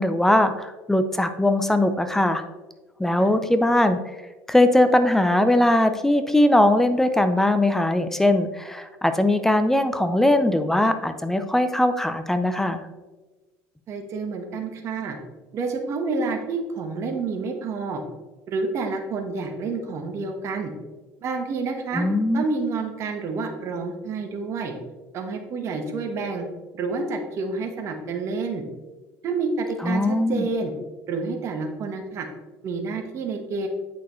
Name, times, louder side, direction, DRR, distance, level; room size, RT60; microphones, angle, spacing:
voice 1, 0.0-2.4 3.0-4.0 4.5-12.8 21.9-22.4 29.8-30.5, left 1 dB, 5° left, 9 dB, 0.6 m, -20 dB
voice 2, 13.9-15.2 15.5-18.0 18.5-20.7 21.2-22.1 22.3-24.7 25.1-26.4 26.7-28.6 29.2-30.7 31.1-32.3 32.6-33.7, right 4 dB, 50° right, 4 dB, 1.3 m, -29 dB
8.4 x 5.9 x 3.1 m, 1.2 s
cardioid pair, 115°, 6 cm